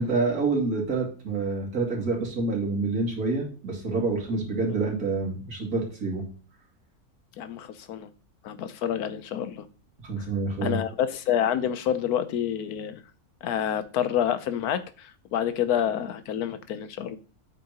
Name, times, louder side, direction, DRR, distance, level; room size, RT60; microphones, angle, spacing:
voice 1, 0.0-6.2 10.0-10.8, right 3 dB, 70° right, 2.8 m, -27 dB
voice 2, 7.4-8.1 8.4-9.7 10.6-13.0 13.4-17.2, left 9 dB, 85° left, 1.2 m, -28 dB
8.4 x 6.5 x 2.9 m
omnidirectional pair, 1.6 m